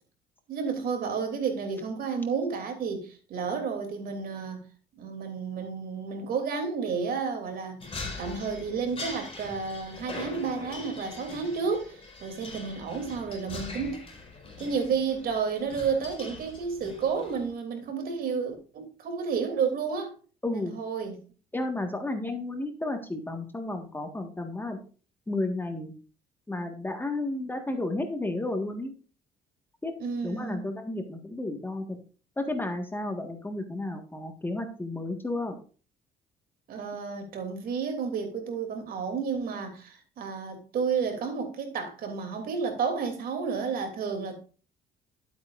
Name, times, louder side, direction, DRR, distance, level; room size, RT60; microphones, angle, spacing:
voice 1, 0.5-4.7 5.0-7.8 8.2-14.0 14.6-20.1 20.5-21.2 30.0-30.6 36.7-44.3, right 5 dB, 60° right, 3.0 m, -31 dB
sound 1, 7.8-17.5, left 3 dB, 35° left, 4.9 m, -42 dB
voice 2, 20.4-20.7 21.5-24.8 25.3-25.9 26.5-28.9 29.8-29.9 30.2-32.0 32.4-35.5, left 2 dB, 10° left, 1.7 m, -32 dB
11.5 x 8.3 x 2.6 m
cardioid pair, 110°, 17 cm